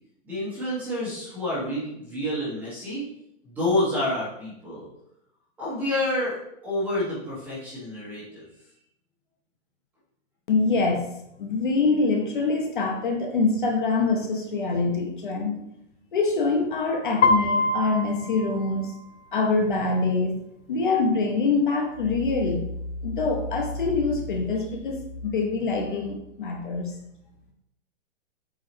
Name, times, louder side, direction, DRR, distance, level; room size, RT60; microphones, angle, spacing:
voice 1, 0.2-3.1 3.4-4.9 5.6-6.4 6.6-8.5, left 1 dB, 5° right, -8 dB, 1.3 m, -28 dB
voice 2, 10.5-11.1 11.4-15.7 16.1-18.9 19.3-20.3 20.7-22.7 23.0-26.9, left 3 dB, 40° left, 2 dB, 0.9 m, -25 dB
Piano, 17.2-19.3, left 2 dB, 70° left, 1.0 m, -24 dB
7.5 x 4.6 x 3.1 m, 0.80 s
hypercardioid pair, 180°, 37 cm